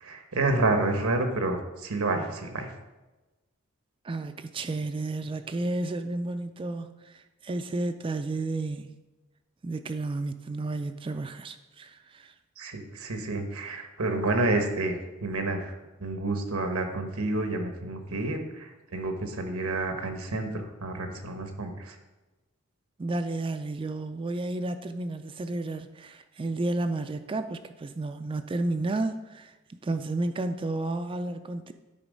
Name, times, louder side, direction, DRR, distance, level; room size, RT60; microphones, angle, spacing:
voice 1, 0.0-2.7 12.6-15.7 16.0-20.5 20.8-21.9, right 2 dB, 85° right, 1.1 m, -29 dB
voice 2, 4.0-9.0 9.6-12.3 23.0-29.5 29.8-31.7, right 2 dB, 25° right, 0.3 m, -32 dB
10.0 x 4.0 x 5.3 m
head